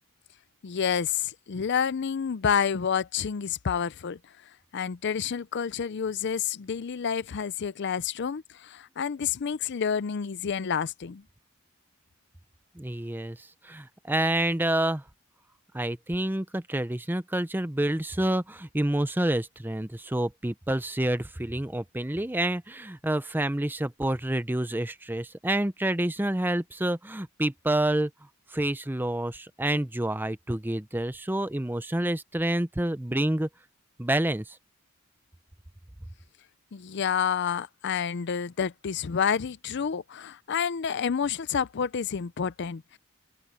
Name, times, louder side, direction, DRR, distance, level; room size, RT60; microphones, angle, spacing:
voice 1, 0.6-4.2 4.7-11.2 36.7-43.0, left 7 dB, 50° left, 0.5 m, -29 dB
voice 2, 12.8-15.0 15.7-28.1 28.5-33.5 34.0-34.6, right 1 dB, 10° right, 0.6 m, -28 dB
open air
head